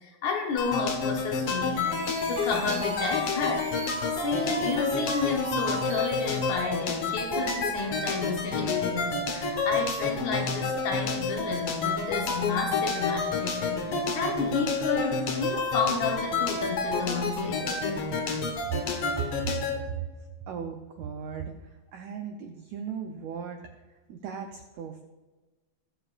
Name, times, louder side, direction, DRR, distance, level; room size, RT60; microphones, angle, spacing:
voice 1, 0.0-3.7 4.2-17.8, left 4 dB, 65° left, 1 dB, 2.1 m, -31 dB
sound 1, 0.6-19.8, left 4 dB, 80° left, 1.2 m, -29 dB
sound 2, 1.6-6.6, right 1 dB, 60° right, 4.0 m, -39 dB
voice 2, 19.2-20.1 20.5-23.6 23.9-25.0, right 8 dB, 90° right, 4 dB, 1.6 m, -37 dB
21.0 x 7.8 x 2.5 m, 1.2 s
omnidirectional pair, 4.3 m